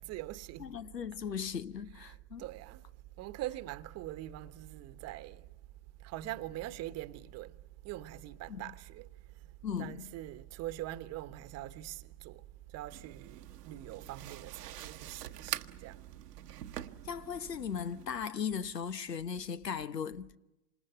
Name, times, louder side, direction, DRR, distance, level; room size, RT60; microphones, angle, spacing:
voice 1, 0.0-0.8 2.0-2.9 3.2-5.5 6.0-16.0, right 14 dB, 30° right, 1.2 m, -43 dB
voice 2, 0.6-2.4 8.5-8.6 9.6-10.1 17.0-20.4, left 7 dB, 90° left, 1.1 m, -37 dB
sound 1, 12.9-18.1, right 11 dB, 75° right, 1.1 m, -45 dB
28.0 x 26.5 x 6.8 m
hypercardioid pair, 105°, 47 cm